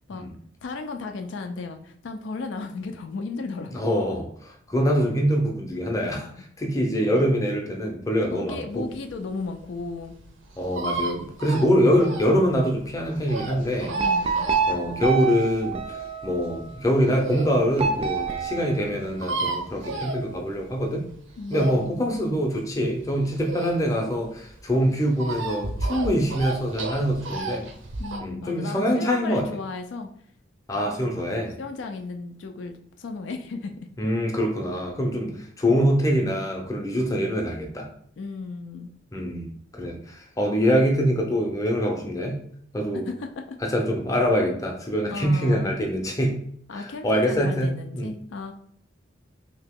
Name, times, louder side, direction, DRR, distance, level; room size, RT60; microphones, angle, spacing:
voice 1, 0.6-3.8 6.0-6.4 7.0-7.3 8.3-10.1 14.0-14.5 21.4-22.3 28.0-30.1 31.0-33.9 38.2-38.9 42.9-43.6 45.1-45.7 46.7-48.5, left 3 dB, 75° left, 5 dB, 0.4 m, -35 dB
voice 2, 3.7-6.3 6.6-8.9 10.6-14.0 14.7-16.0 16.2-21.1 21.5-27.6 28.2-29.5 30.7-31.6 34.0-37.9 39.1-42.4 42.7-43.1 43.6-46.4 46.7-48.1, equal, 15° left, 0 dB, 0.6 m, -24 dB
sound 1, 8.9-17.6 18.0-18.1 18.3-18.4 18.6-18.7 18.9-20.8 21.1-24.1 24.4-28.2, right 2 dB, 90° right, 0.7 m, -32 dB
sound 2, 14.0-16.7 17.8-19.5, right 5 dB, 30° right, 0.3 m, -27 dB
2.9 x 2.8 x 3.6 m, 0.64 s
head